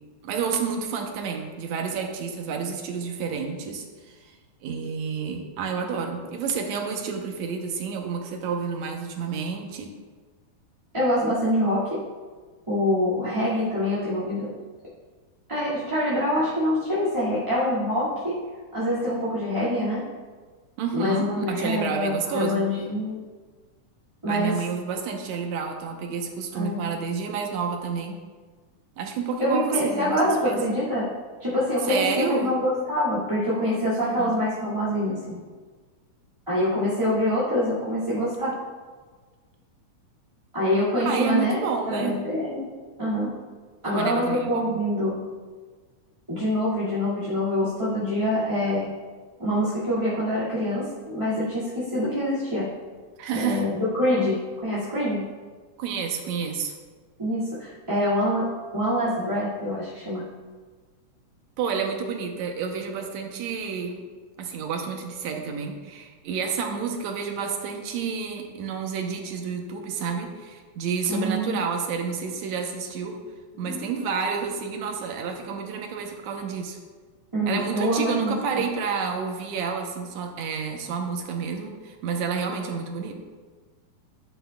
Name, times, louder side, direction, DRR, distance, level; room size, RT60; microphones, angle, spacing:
voice 1, 0.2-4.3 4.6-9.9 20.8-22.6 24.3-28.2 29.0-30.9 31.9-32.5 34.0-34.4 41.1-42.1 43.8-44.8 53.2-53.7 55.8-56.7 61.6-64.0 64.4-73.2 73.6-76.8 77.4-83.1, right 6 dB, 70° right, 3 dB, 2.0 m, -30 dB
voice 2, 10.9-12.0 12.7-14.5 15.5-18.4 18.7-20.1 20.9-23.2 24.2-24.6 26.5-26.8 29.4-31.1 31.4-35.4 36.5-38.6 40.5-41.6 41.9-42.7 43.0-43.3 43.8-45.2 46.3-48.9 49.4-52.7 53.3-55.2 57.2-58.5 58.7-60.3 71.1-71.7 73.6-73.9 77.3-78.6, left 1 dB, 10° right, -11 dB, 1.5 m, -25 dB
11.0 x 9.4 x 2.3 m, 1.4 s
omnidirectional pair, 3.6 m